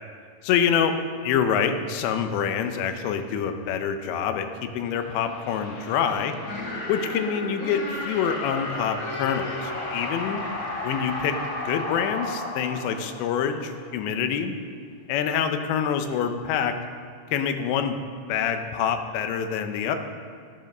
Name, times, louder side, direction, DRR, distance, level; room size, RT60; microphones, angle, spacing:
voice 1, 0.4-1.0 1.2-6.3 6.9-10.4 10.8-11.4 11.7-14.5 15.1-16.8 17.3-18.0 18.3-20.0, left 7 dB, 85° left, 7 dB, 3.0 m, -26 dB
sound 1, 4.9-13.7, left 2 dB, 40° left, 2.8 m, -33 dB
12.0 x 8.2 x 6.5 m, 2.2 s
omnidirectional pair, 5.1 m